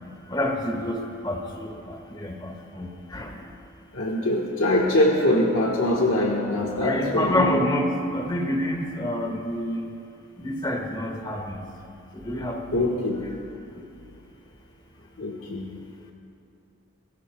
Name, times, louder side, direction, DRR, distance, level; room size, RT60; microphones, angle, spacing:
voice 1, 0.3-3.3 6.8-9.8 10.4-11.6 12.2-12.6 12.9-13.0, left 1 dB, 20° left, 3 dB, 1.6 m, -28 dB
voice 2, 3.9-7.5 12.7-13.3 15.2-15.7, left 1 dB, 90° left, -1 dB, 1.6 m, -23 dB
27.5 x 21.0 x 2.4 m, 2.7 s
head